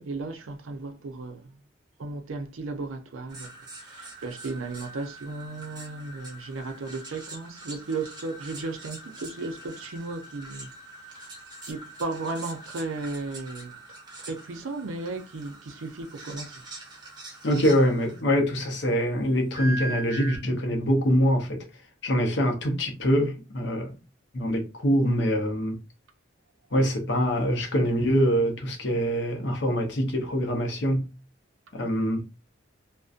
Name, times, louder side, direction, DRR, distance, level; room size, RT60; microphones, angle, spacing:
voice 1, 0.0-1.6 2.0-10.7 11.6-13.7 14.2-16.6, right 3 dB, 85° right, 0.5 m, -35 dB
sound 1, 3.3-18.2 19.5-20.4, right 2 dB, 20° right, 0.6 m, -42 dB
voice 2, 17.4-21.7 22.0-23.9 24.3-25.8 26.7-31.1 31.7-32.3, equal, 60° left, 0.6 m, -24 dB
2.5 x 2.1 x 2.4 m
head